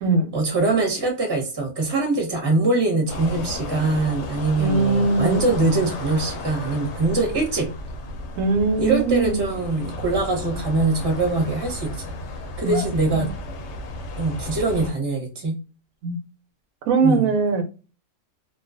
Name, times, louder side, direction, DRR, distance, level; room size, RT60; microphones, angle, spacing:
voice 1, 0.3-7.7 8.8-11.9 12.6-13.3 14.2-15.5 17.0-17.3, right 3 dB, 20° right, 0.7 m, -23 dB
sound 1, 3.1-14.9, left 2 dB, 65° left, 0.8 m, -33 dB
voice 2, 4.6-5.4 8.4-9.4 12.6-13.3 16.0-16.2 16.9-17.6, right 4 dB, 80° right, 1.0 m, -21 dB
2.4 x 2.3 x 2.4 m
omnidirectional pair, 1.5 m